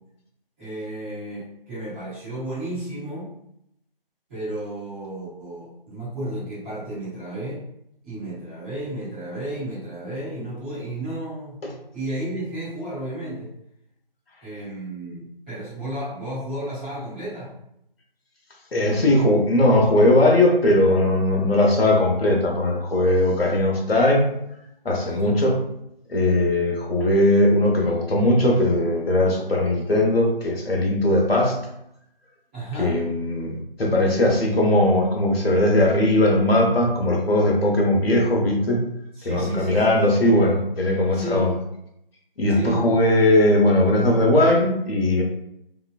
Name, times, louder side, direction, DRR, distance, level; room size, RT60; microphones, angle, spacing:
voice 1, 0.6-3.3 4.3-7.6 8.0-11.6 11.9-13.5 14.4-17.5 25.0-25.4 32.5-32.9 39.1-40.0 41.1-41.5 42.5-42.9, right 1 dB, 10° right, -14 dB, 1.0 m, -33 dB
voice 2, 18.7-24.3 24.8-25.6 26.1-31.6 32.8-38.8 39.2-41.5 42.4-45.2, left 1 dB, 85° left, 0 dB, 0.9 m, -19 dB
2.9 x 2.2 x 2.4 m, 0.79 s
figure-of-eight pair, 165°, 29 cm